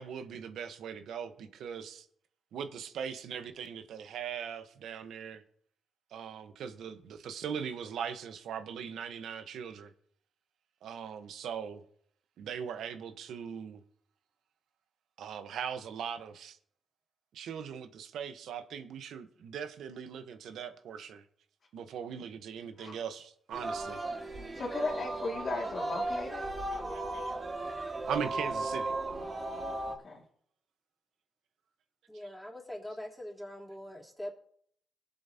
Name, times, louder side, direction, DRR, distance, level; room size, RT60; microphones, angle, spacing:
voice 1, 0.0-2.1 2.5-5.4 6.1-9.9 10.8-11.8 12.4-13.8 15.2-16.6 17.3-21.2 21.7-24.0 26.7-27.3 28.1-29.0 32.1-32.2, right 7 dB, 80° right, 1.0 m, -40 dB
Singing, 23.5-30.0, right 2 dB, 35° right, 1.8 m, -36 dB
voice 2, 24.5-26.4 29.1-30.2, left 3 dB, 60° left, 2.2 m, -37 dB
voice 3, 32.1-34.3, left 1 dB, ahead, 3.4 m, -42 dB
22.0 x 7.7 x 2.8 m
supercardioid pair, 60°, 0 cm